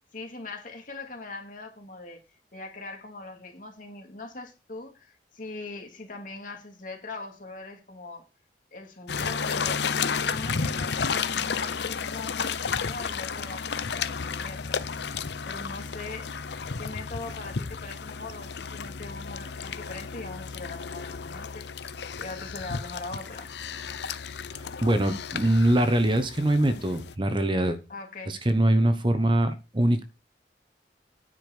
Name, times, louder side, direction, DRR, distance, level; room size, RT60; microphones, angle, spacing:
voice 1, 0.1-2.2 2.5-8.2 8.7-14.8 15.4-16.3 16.8-21.7 22.2-23.5 27.9-28.4, left 3 dB, 50° left, 2.6 m, -41 dB
sound 1, 9.1-27.1, left 6 dB, 75° left, 0.7 m, -32 dB
voice 2, 24.5-27.8 28.3-30.0, right 1 dB, 30° right, 1.0 m, -23 dB
9.8 x 5.2 x 6.7 m
head